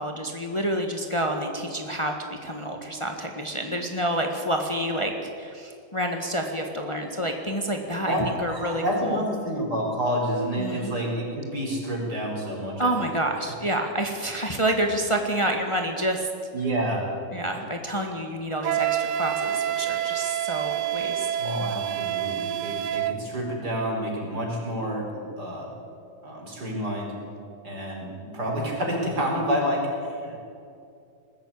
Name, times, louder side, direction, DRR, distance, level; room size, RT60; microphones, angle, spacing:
voice 1, 0.0-9.2 10.6-10.9 12.8-16.3 17.3-21.7, right 1 dB, 20° left, 3 dB, 1.5 m, -28 dB
voice 2, 8.5-13.1 16.5-17.0 21.4-25.1 25.4-25.7 26.2-27.1 27.6-30.6, equal, 70° right, -1 dB, 5.3 m, -29 dB
Wind instrument woodwind instrument, 18.6-23.2, right 11 dB, 85° right, 1.4 m, -27 dB
20.5 x 15.0 x 8.8 m, 2.5 s
omnidirectional pair, 1.8 m